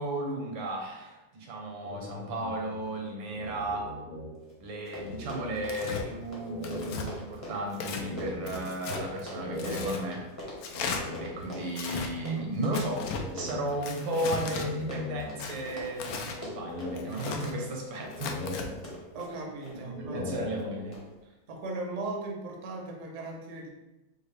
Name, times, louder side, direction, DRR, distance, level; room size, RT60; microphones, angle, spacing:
voice 1, 0.0-3.9 4.6-10.3 11.2-13.1 13.3-18.4 19.7-21.0, right 1 dB, 80° right, 0 dB, 1.6 m, -34 dB
sound 1, 1.8-4.6 4.9-6.0 6.4-11.9 12.8-14.1 14.5-15.8 16.2-17.7 18.1-19.4 19.8-21.2, left 2 dB, 70° left, 1.4 m, -41 dB
Run, 4.5-4.6 4.8-19.8 20.3-20.6 20.9-21.0, left 1 dB, 10° left, 0.7 m, -43 dB
Tearing, 5.7-6.0 6.6-7.1 7.7-8.1 8.5-9.0 9.6-10.0 10.6-11.0 11.7-12.1 12.7-13.2 13.8-14.7 15.4-16.4 17.0-17.5 18.1-18.7, left 5 dB, 90° left, 0.7 m, -36 dB
voice 2, 19.1-20.3 21.5-23.7, right 2 dB, 55° right, 0 dB, 0.8 m, -37 dB
4.7 x 2.5 x 3.2 m, 1.0 s
omnidirectional pair, 2.1 m